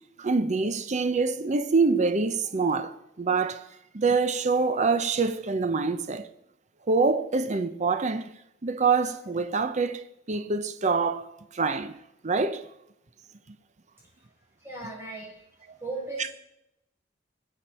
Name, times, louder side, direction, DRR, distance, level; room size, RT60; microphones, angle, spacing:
voice 1, 0.2-3.7 3.9-6.3 6.9-8.3 8.6-12.0 12.2-12.6 16.2-16.3, right 4 dB, 40° right, 0.7 m, -25 dB
voice 2, 14.6-15.5 15.8-16.3, right 3 dB, 15° right, 5.4 m, -36 dB
21.0 x 7.3 x 4.3 m
head